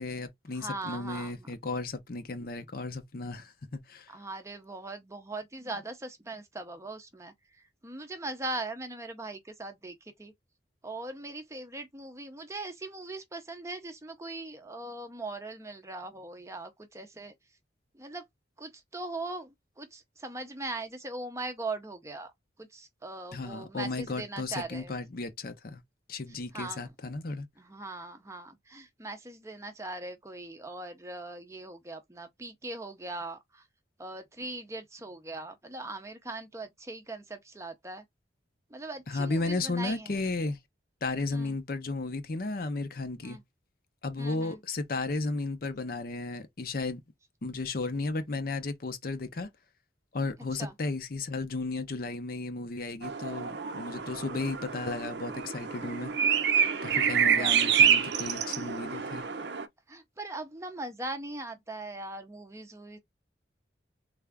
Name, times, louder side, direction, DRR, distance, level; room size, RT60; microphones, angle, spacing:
voice 1, 0.0-4.1 23.3-25.8 26.1-27.5 39.1-40.6 41.0-43.4 44.0-47.0 47.4-49.5 50.1-56.1 56.8-59.2, left 3 dB, 50° left, 0.6 m, -34 dB
voice 2, 0.5-1.6 4.1-10.3 10.8-17.3 17.9-18.2 18.6-22.3 22.6-25.0 26.3-26.9 27.6-33.6 34.0-38.0 38.7-40.2 41.3-41.5 43.2-43.4 44.2-44.6 50.6-50.7 57.2-57.6 59.9-63.0, right 2 dB, 15° right, 0.6 m, -40 dB
sound 1, 53.0-59.7, right 7 dB, 65° right, 0.5 m, -27 dB
3.4 x 2.4 x 3.4 m
head